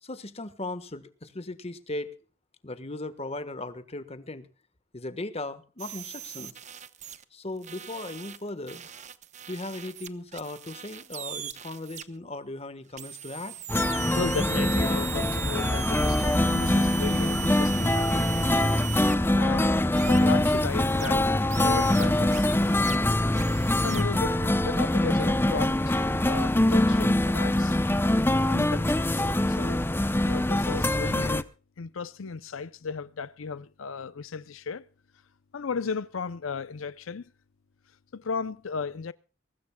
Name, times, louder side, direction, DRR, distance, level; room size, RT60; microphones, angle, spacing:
voice 1, 0.0-2.1 2.6-4.5 4.9-6.5 7.3-8.9 9.5-13.5, left 2 dB, 30° left, 1.4 m, -37 dB
sound 1, 5.8-7.2 7.6-12.0 13.0-19.1 19.9-21.1 21.5-23.0 23.3-24.0, right 10 dB, 35° right, 0.9 m, -39 dB
sound 2, 13.7-31.4, left 1 dB, 10° left, 0.7 m, -24 dB
voice 2, 14.1-18.2 19.3-19.7 20.1-22.5 23.8-27.8 28.5-29.2 29.5-29.8 30.2-31.5 31.8-34.8 35.5-37.3 38.1-39.1, left 5 dB, 90° left, 0.6 m, -35 dB
23.0 x 19.0 x 2.3 m
head